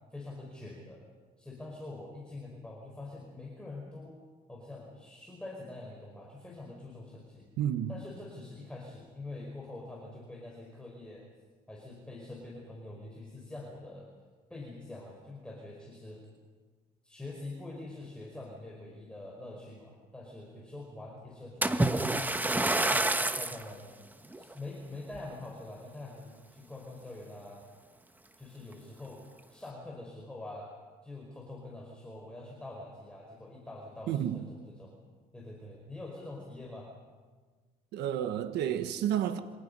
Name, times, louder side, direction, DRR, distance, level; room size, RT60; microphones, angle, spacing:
voice 1, 0.1-1.0 1.4-4.2 4.5-7.5 7.9-11.3 11.7-14.1 14.5-16.2 17.0-22.0 22.4-23.9 24.4-27.7 28.4-29.2 29.5-30.7 31.0-35.0 35.3-36.9, left 2 dB, 5° left, 5.1 m, -45 dB
voice 2, 7.6-8.0 34.1-34.4 37.9-39.4, right 10 dB, 80° right, 1.4 m, -31 dB
Splash splatter, 21.6-23.7 24.3-24.5 25.1-25.2, right 2 dB, 10° right, 1.3 m, -28 dB
28.5 x 25.5 x 5.5 m
cardioid pair, 110°, 17 cm